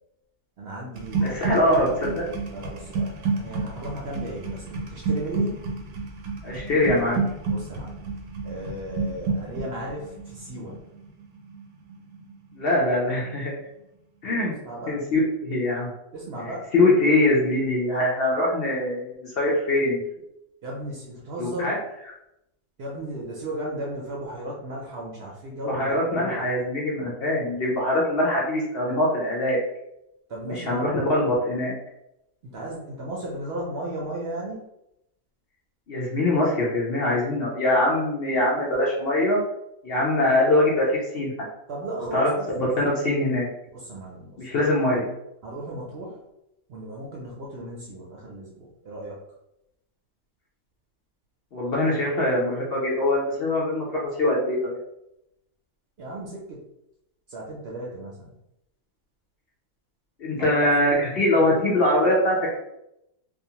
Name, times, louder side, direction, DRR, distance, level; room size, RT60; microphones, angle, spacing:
voice 1, 0.6-1.6 1.8-2.0 2.5-5.6 7.5-7.9 8.4-10.8 14.6-14.9 16.1-16.7 20.6-21.8 22.8-26.4 30.3-30.9 32.4-34.6 41.7-42.5 43.7-44.7 45.4-46.2 46.7-49.2 56.0-56.6 57.3-58.3 60.4-60.5 60.8-61.0 61.4-61.5, right 1 dB, 60° right, -3 dB, 0.7 m, -35 dB
sound 1, 0.9-12.8 13.1-13.5, right 3 dB, 90° right, 1.0 m, -30 dB
voice 2, 1.2-2.2 6.4-7.2 12.5-13.5 14.2-14.5 14.9-15.9 16.7-20.0 21.4-21.8 25.7-29.6 30.4-31.8 35.9-39.4 39.8-41.3 42.1-43.5 44.4-45.1 51.5-54.8 60.2-62.5, left 1 dB, 60° left, -4 dB, 0.7 m, -23 dB
2.5 x 2.4 x 2.8 m, 0.84 s
omnidirectional pair, 1.4 m